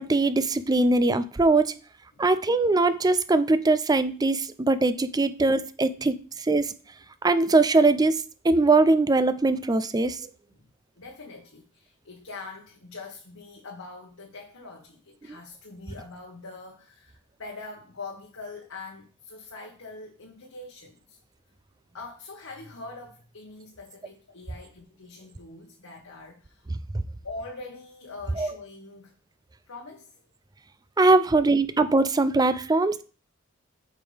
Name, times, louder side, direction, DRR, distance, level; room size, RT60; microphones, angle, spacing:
voice 1, 0.0-1.7 2.2-6.7 7.2-10.3 28.4-28.5 31.0-33.0, right 3 dB, 20° right, 0.4 m, -21 dB
voice 2, 11.0-21.2 21.9-26.7 27.2-29.1 29.7-30.2, left 3 dB, 85° left, 1.4 m, -43 dB
8.1 x 5.3 x 3.4 m
head